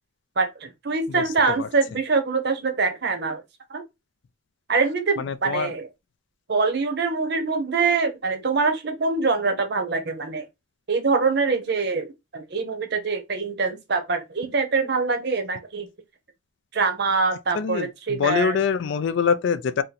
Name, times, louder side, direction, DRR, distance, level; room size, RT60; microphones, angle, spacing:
voice 1, 0.4-3.4 3.7-3.8 4.7-5.9 6.5-10.5 10.9-15.9 16.7-18.6, right 4 dB, 50° right, 0.7 m, -24 dB
voice 2, 5.2-5.7 17.5-19.8, left 6 dB, 55° left, 0.3 m, -24 dB
2.8 x 2.5 x 4.0 m
head